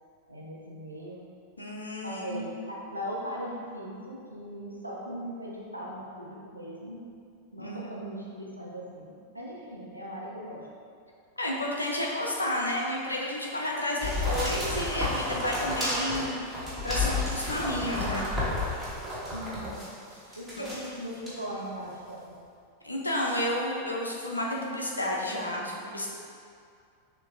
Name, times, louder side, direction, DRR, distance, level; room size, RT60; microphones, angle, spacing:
voice 1, 0.3-1.2 2.0-7.0 7.5-10.6 19.3-19.8 20.4-22.3, equal, 85° right, -4 dB, 0.6 m, -39 dB
voice 2, 1.6-2.5 7.6-8.2 11.4-18.3 22.8-26.1, left 1 dB, 80° left, -2 dB, 0.6 m, -31 dB
sound 1, 14.0-19.9 20.3-20.9 21.3-21.4, left 2 dB, ahead, 1.1 m, -31 dB
6.3 x 2.2 x 2.5 m, 2.4 s
figure-of-eight pair, 90°, 0 cm